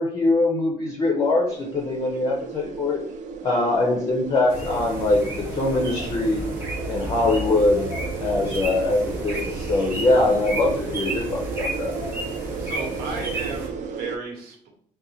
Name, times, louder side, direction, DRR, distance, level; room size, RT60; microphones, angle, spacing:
voice 1, 0.0-3.0 3.4-6.5 6.9-7.9 8.2-11.9, left 2 dB, 25° left, 0 dB, 0.5 m, -22 dB
sound 1, 1.5-14.2, right 6 dB, 55° right, 0.4 m, -34 dB
sound 2, 4.5-13.7, right 1 dB, 15° right, 0.8 m, -32 dB
voice 2, 12.6-14.7, right 4 dB, 90° right, 0 dB, 1.2 m, -34 dB
3.8 x 2.2 x 4.1 m, 0.65 s
cardioid pair, 175°, 16 cm